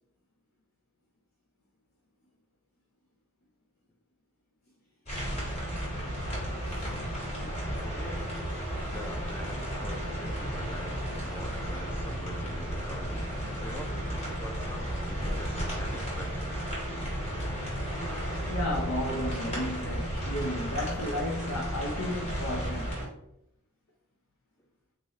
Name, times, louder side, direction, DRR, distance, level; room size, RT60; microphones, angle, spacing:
sound 1, 5.1-23.0, equal, 30° left, 1.4 m, -33 dB
voice 1, 6.6-7.1 7.4-7.5 18.5-23.0, left 1 dB, 85° left, -2 dB, 0.7 m, -33 dB
voice 2, 7.8-8.3 8.9-13.3 13.6-16.7 17.2-17.3, left 1 dB, 10° left, 3 dB, 0.3 m, -45 dB
3.7 x 2.6 x 3.1 m, 0.81 s
head